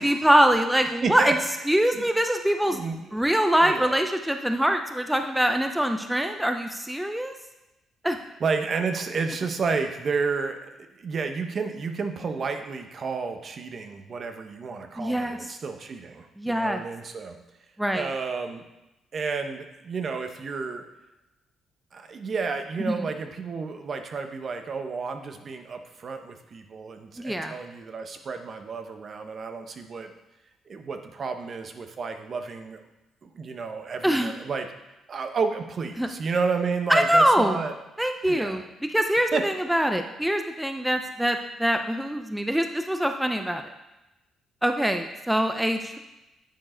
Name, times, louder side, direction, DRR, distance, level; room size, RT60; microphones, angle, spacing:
voice 1, 0.0-1.4 1.7-2.8 3.1-7.3 8.0-8.2 15.0-15.4 16.4-16.8 17.8-18.1 22.9-23.0 27.2-27.5 34.0-34.3 36.0-36.1 36.9-37.6 38.0-38.6 38.9-43.7 44.6-46.0, equal, 5° right, 6 dB, 0.5 m, -23 dB
voice 2, 2.7-3.2 3.5-4.0 8.1-10.7 11.0-17.4 17.9-18.6 19.1-20.8 21.9-30.1 30.7-32.8 33.2-34.7 35.1-37.7 38.3-38.6 39.3-39.4, right 5 dB, 50° right, 6 dB, 0.8 m, -31 dB
9.1 x 4.6 x 4.4 m, 0.97 s
cardioid pair, 90°, 0 cm